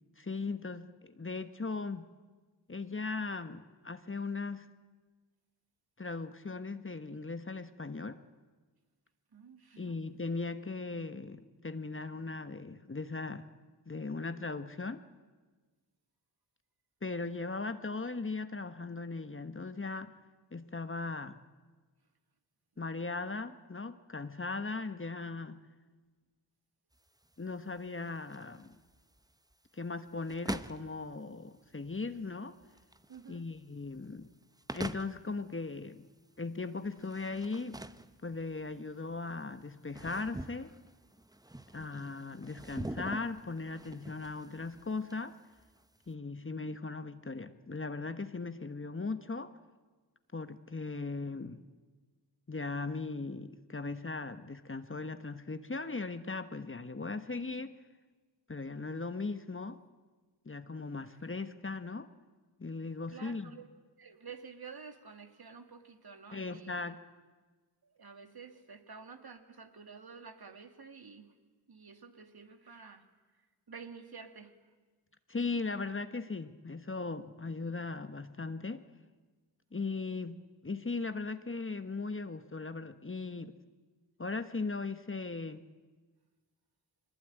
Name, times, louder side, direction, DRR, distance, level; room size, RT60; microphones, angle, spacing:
voice 1, 0.2-2.0 2.7-4.7 6.0-8.2 9.8-13.5 13.9-15.0 17.0-20.1 20.5-21.4 22.8-25.6 27.4-28.8 29.7-32.6 33.3-34.3 34.7-36.0 36.4-37.8 38.2-40.7 41.7-45.4 46.1-49.5 50.3-51.6 52.5-57.7 58.5-59.8 60.4-62.1 62.6-63.6 66.3-67.0 75.3-78.8 79.7-83.6 84.2-85.6, left 3 dB, 25° left, 10 dB, 1.3 m, -38 dB
voice 2, 9.3-10.0 33.1-33.5 63.1-63.7 64.0-66.9 67.8-71.3 71.7-73.1 73.7-74.6, right 5 dB, 55° right, 6 dB, 2.4 m, -50 dB
sound 1, 26.9-46.1, right 1 dB, 10° right, 1.0 m, -46 dB
22.5 x 20.5 x 9.1 m, 1.3 s
supercardioid pair, 40°, 45 cm